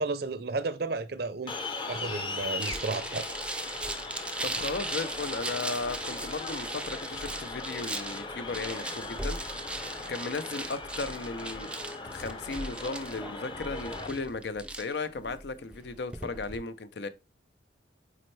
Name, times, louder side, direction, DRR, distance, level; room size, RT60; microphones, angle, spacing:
voice 1, 0.0-1.5 1.9-3.3, right 3 dB, 55° right, 0.6 m, -32 dB
sound 1, 1.5-14.1, left 3 dB, 25° left, 0.7 m, -39 dB
sound 2, 2.6-16.6, right 2 dB, 5° right, 0.4 m, -38 dB
voice 2, 4.4-11.7 12.0-17.1, left 3 dB, 60° left, 0.5 m, -36 dB
8.5 x 4.3 x 3.2 m
head